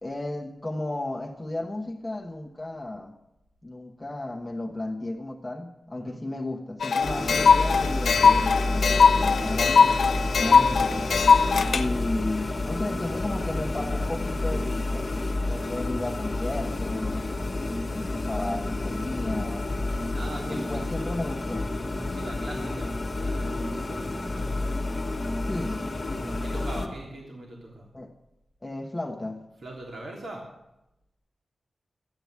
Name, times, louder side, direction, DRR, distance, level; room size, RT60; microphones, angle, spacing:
voice 1, 0.0-3.2 3.6-11.2 11.7-17.3 17.9-19.7 20.5-21.7 25.4-25.9 27.9-28.1 28.6-29.5, left 2 dB, 10° left, 1 dB, 1.2 m, -34 dB
sound 1, 6.8-11.8, left 5 dB, 90° left, 0.9 m, -20 dB
sound 2, 7.0-26.9, left 2 dB, 30° left, 1.4 m, -30 dB
voice 2, 20.1-20.8 21.9-24.5 26.1-27.9 29.6-30.4, right 1 dB, 65° right, -1 dB, 3.4 m, -41 dB
13.5 x 8.9 x 9.4 m, 0.89 s
wide cardioid pair, 135°, 0 cm